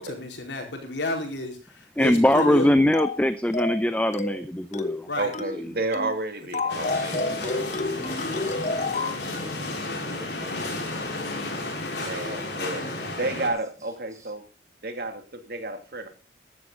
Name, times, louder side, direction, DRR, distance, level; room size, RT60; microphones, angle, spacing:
voice 1, 0.0-2.7 5.0-5.3, left 2 dB, 85° left, 4.5 m, -31 dB
voice 2, 2.0-5.1, left 1 dB, 10° left, 0.6 m, -21 dB
sound 1, 2.3-2.6 2.9-3.2 3.5-3.8 4.1-4.4 4.7-5.0 5.3-5.6 5.9-6.2 6.5-9.2, left 3 dB, 40° left, 1.1 m, -29 dB
voice 3, 5.2-7.3 12.0-14.4 14.8-16.1, right 2 dB, 60° right, 2.6 m, -31 dB
sound 2, 6.7-13.5, left 2 dB, 70° left, 4.6 m, -32 dB
voice 4, 6.9-13.3 13.8-14.3, right 1 dB, 20° right, 5.8 m, -44 dB
15.0 x 12.0 x 3.9 m
head